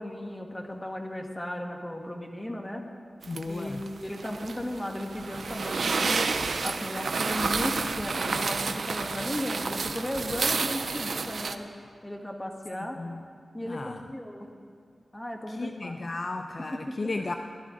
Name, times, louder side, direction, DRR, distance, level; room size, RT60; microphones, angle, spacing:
voice 1, 0.0-2.8 3.5-6.3 6.6-11.7 12.0-13.0 13.5-14.5 15.1-16.0 16.7-17.1, left 1 dB, 15° left, 2 dB, 1.5 m, -35 dB
sound 1, 3.2-11.6, right 4 dB, 75° right, 0.7 m, -30 dB
voice 2, 3.3-3.8 13.0-13.2 13.6-14.0 15.6-17.3, left 3 dB, 45° left, 5 dB, 0.5 m, -34 dB
19.0 x 12.0 x 3.8 m, 2.2 s
wide cardioid pair, 85°, 0 cm